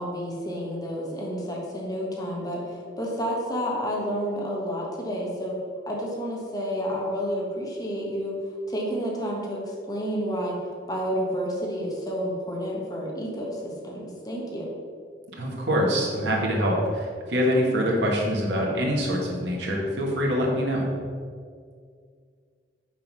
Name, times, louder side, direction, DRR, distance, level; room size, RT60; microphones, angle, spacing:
voice 1, 0.0-5.5 5.9-8.3 8.7-10.5 10.9-14.7, equal, 20° left, -3 dB, 1.3 m, -30 dB
voice 2, 15.4-20.9, equal, 70° right, -2 dB, 1.5 m, -24 dB
6.2 x 3.8 x 6.1 m, 2.1 s
head